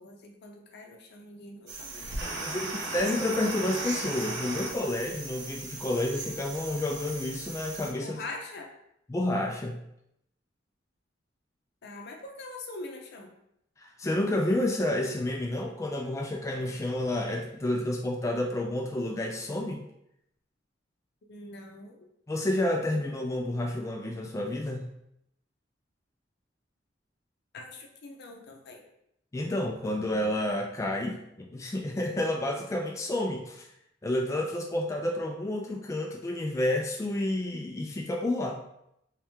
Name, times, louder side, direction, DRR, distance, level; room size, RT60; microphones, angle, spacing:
voice 1, 0.0-2.8 8.0-8.7 11.8-13.3 21.3-22.0 27.5-28.8, left 2 dB, 60° left, 2 dB, 0.6 m, -43 dB
sound 1, 1.7-7.9, right 2 dB, 65° right, 0.9 m, -37 dB
voice 2, 2.2-8.2 9.1-9.8 13.8-19.8 22.3-24.9 29.3-33.7 34.0-38.6, left 1 dB, 15° left, 1 dB, 0.3 m, -30 dB
3.5 x 3.2 x 3.0 m, 0.79 s
head